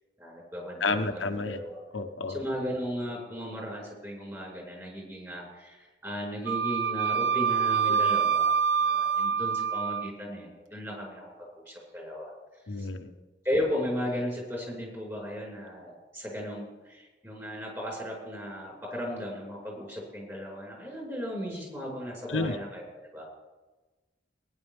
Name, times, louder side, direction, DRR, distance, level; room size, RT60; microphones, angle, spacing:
voice 1, 0.2-1.8 2.3-8.5 8.8-12.3 12.8-12.9 13.4-22.8 23.1-23.3, equal, 15° right, -3 dB, 5.2 m, -36 dB
voice 2, 0.8-1.6 1.9-2.4 7.8-8.0 12.7-13.1 22.3-22.6, left 3 dB, 90° left, 6 dB, 1.0 m, -30 dB
Wind instrument woodwind instrument, 6.5-10.1, right 7 dB, 70° right, 0.7 m, -26 dB
19.5 x 10.5 x 3.5 m, 1.2 s
head